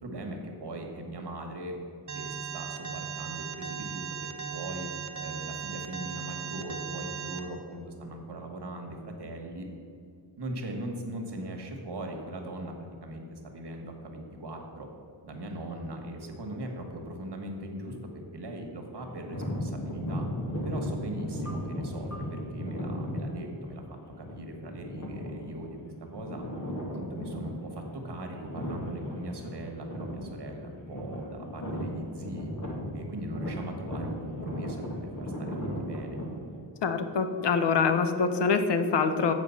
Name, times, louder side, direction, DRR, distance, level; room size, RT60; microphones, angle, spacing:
voice 1, 0.0-1.8 2.1-4.9 5.2-9.7 10.4-12.7 13.0-14.9 15.2-18.0 18.3-20.2 20.6-26.4 26.9-32.5 32.9-36.2, right 1 dB, 75° right, 3 dB, 1.3 m, -39 dB
Alarm, 2.1-7.4, right 7 dB, 45° right, 0.6 m, -37 dB
sound 1, 18.9-36.6, equal, 45° left, 1.5 m, -36 dB
voice 2, 36.8-39.3, left 5 dB, 85° left, 8 dB, 0.7 m, -25 dB
7.4 x 4.8 x 7.0 m, 2.4 s
wide cardioid pair, 130°, 41 cm